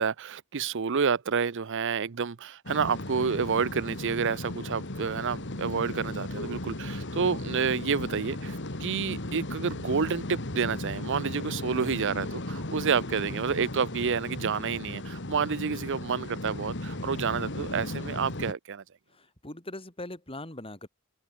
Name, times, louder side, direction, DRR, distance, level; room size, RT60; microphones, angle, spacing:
voice 1, 0.0-18.8, right 6 dB, 60° right, 0.6 m, -29 dB
sound 1, 2.7-18.5, left 1 dB, 55° left, 2.7 m, -36 dB
voice 2, 11.5-11.9 15.6-15.9 19.1-20.9, left 1 dB, 25° left, 5.9 m, -42 dB
open air
head